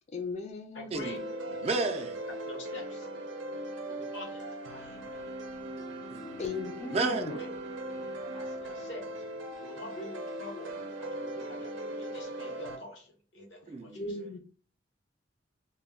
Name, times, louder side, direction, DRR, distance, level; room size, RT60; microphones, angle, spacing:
voice 1, 0.1-0.9 6.4-7.3 14.0-14.4, left 3 dB, 35° left, 0.4 m, -37 dB
voice 2, 0.7-1.2 2.5-3.1 3.9-5.4 6.9-7.5 8.2-9.1 9.6-14.3, left 1 dB, 80° left, 0.8 m, -46 dB
sound 1, 1.0-12.8, right 1 dB, 90° right, 0.5 m, -39 dB
voice 3, 1.5-2.2 6.1-6.6 6.9-7.5 13.7-14.1, right 3 dB, 35° right, 0.3 m, -33 dB
2.2 x 2.1 x 3.4 m
head